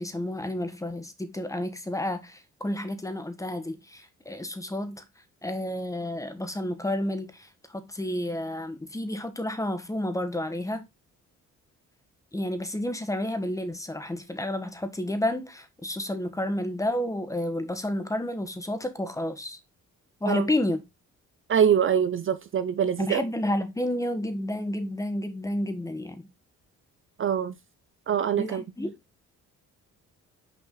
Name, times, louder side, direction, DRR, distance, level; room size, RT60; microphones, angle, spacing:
voice 1, 0.0-5.0 5.4-10.8 12.3-19.6 20.2-20.8 23.0-26.3 28.4-29.0, left 1 dB, 10° left, 1.4 m, -30 dB
voice 2, 21.5-23.2 27.2-27.5 28.1-28.6, right 8 dB, 45° right, 0.6 m, -24 dB
6.1 x 5.3 x 3.9 m
cardioid pair, 90°, 30 cm